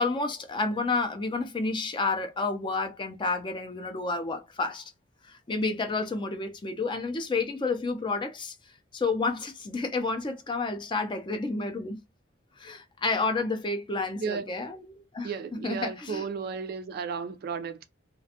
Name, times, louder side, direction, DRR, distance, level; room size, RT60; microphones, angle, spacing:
voice 1, 0.0-4.9 5.2-8.5 8.9-12.0 12.6-15.3 15.6-16.2, left 3 dB, 25° left, 0.4 m, -30 dB
voice 2, 14.2-14.5 15.2-17.8, right 5 dB, 50° right, 0.3 m, -34 dB
2.4 x 2.1 x 2.7 m
head